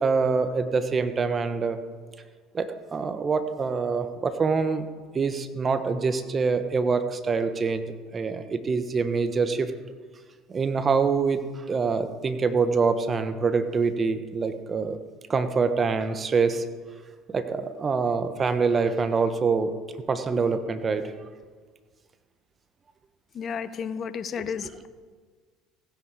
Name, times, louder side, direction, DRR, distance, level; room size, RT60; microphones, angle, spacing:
voice 1, 0.0-1.8 2.5-4.9 5.1-7.9 8.1-9.7 10.5-15.0 15.3-16.6 17.3-19.7 20.1-21.0, right 4 dB, 30° right, 10 dB, 1.1 m, -25 dB
voice 2, 23.3-24.9, left 7 dB, 45° left, 13 dB, 0.9 m, -32 dB
16.0 x 10.0 x 4.9 m, 1.6 s
hypercardioid pair, 75°, 0 cm